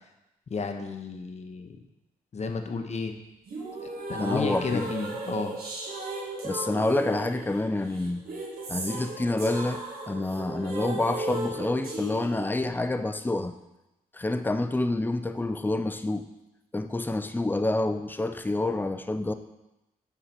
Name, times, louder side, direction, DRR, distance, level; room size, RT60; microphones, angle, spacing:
voice 1, 0.5-1.8 2.3-3.1 4.1-5.6, left 4 dB, 45° left, 5 dB, 0.9 m, -32 dB
sound 1, 3.5-12.5, right 2 dB, 75° right, 1.8 m, -36 dB
voice 2, 4.2-4.9 6.4-8.3 8.7-13.6 14.1-16.3 16.7-19.3, left 2 dB, 10° left, 9 dB, 0.6 m, -28 dB
7.2 x 4.9 x 5.9 m, 0.94 s
cardioid pair, 70°, 15 cm